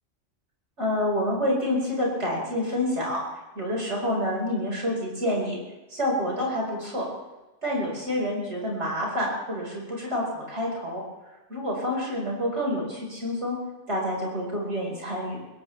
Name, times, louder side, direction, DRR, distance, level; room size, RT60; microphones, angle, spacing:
voice 1, 0.8-3.2 3.6-5.6 5.9-7.0 7.6-11.0 11.5-13.6 13.9-15.4, left 1 dB, 65° right, -2 dB, 5.3 m, -28 dB
22.5 x 17.0 x 3.4 m, 1.1 s
omnidirectional pair, 1.3 m